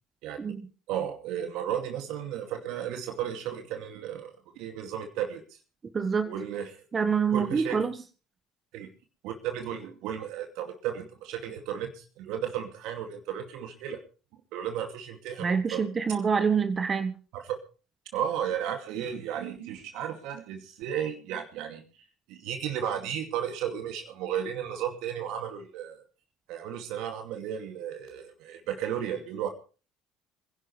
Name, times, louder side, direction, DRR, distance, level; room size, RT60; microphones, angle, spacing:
voice 1, 0.9-5.6 6.3-6.9 7.3-7.8 8.7-8.9 9.2-14.0 14.5-15.8 17.3-17.6 18.1-21.8 22.3-26.0 26.5-29.5, right 9 dB, 70° right, 4 dB, 2.4 m, -34 dB
voice 2, 5.9-6.3 6.9-8.0 15.4-17.1, right 6 dB, 35° right, 10 dB, 1.4 m, -26 dB
25.5 x 11.0 x 3.3 m, 0.36 s
hypercardioid pair, 65°, 0 cm